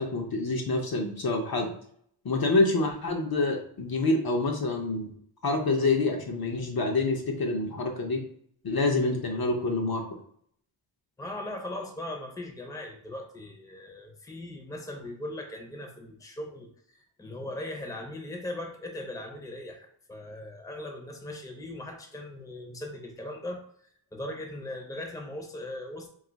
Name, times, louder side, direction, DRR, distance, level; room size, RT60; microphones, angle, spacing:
voice 1, 0.0-1.7 2.2-5.1 5.4-8.2 8.6-10.0, left 2 dB, 50° left, 1 dB, 0.7 m, -27 dB
voice 2, 11.2-23.6 24.1-26.1, left 1 dB, 5° left, 2 dB, 0.7 m, -39 dB
2.6 x 2.4 x 3.9 m, 0.63 s
wide cardioid pair, 85°, 49 cm